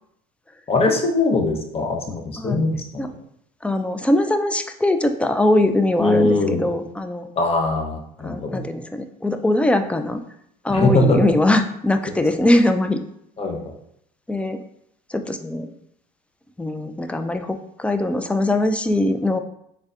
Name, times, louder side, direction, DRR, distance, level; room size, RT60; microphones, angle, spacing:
voice 1, 0.7-3.1 6.0-6.7 7.4-8.6 10.7-11.2 13.4-13.7, left 2 dB, 30° left, 2 dB, 0.8 m, -21 dB
voice 2, 3.6-7.3 8.2-10.2 10.6-13.0 14.3-14.6 15.1-15.7 16.6-19.4, left 1 dB, 5° left, 8 dB, 0.3 m, -21 dB
3.8 x 3.4 x 2.4 m, 0.74 s
supercardioid pair, 85°, 20 cm